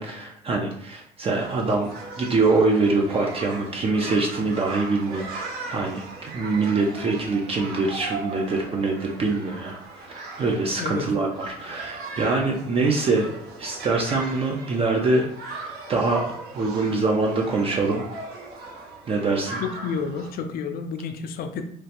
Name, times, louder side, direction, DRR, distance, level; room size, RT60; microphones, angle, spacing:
voice 1, 0.0-1.9 2.2-13.3 13.6-15.3 15.9-18.0 19.1-19.6, right 3 dB, 35° right, 1 dB, 0.5 m, -24 dB
sound 1, 1.3-20.3, right 3 dB, 70° right, 0.8 m, -38 dB
voice 2, 19.6-21.6, left 6 dB, 60° left, 7 dB, 0.4 m, -30 dB
3.1 x 2.4 x 2.8 m, 0.69 s
supercardioid pair, 90°, 17 cm